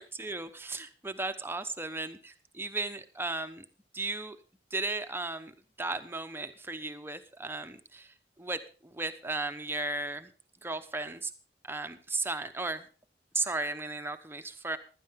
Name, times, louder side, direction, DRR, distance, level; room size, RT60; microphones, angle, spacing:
voice 1, 0.0-3.6 3.9-4.4 4.7-5.5 5.8-10.3 10.6-11.3 11.6-12.9 13.3-14.8, right 3 dB, 15° right, 8 dB, 1.0 m, -35 dB
15.5 x 12.0 x 3.7 m, 0.36 s
head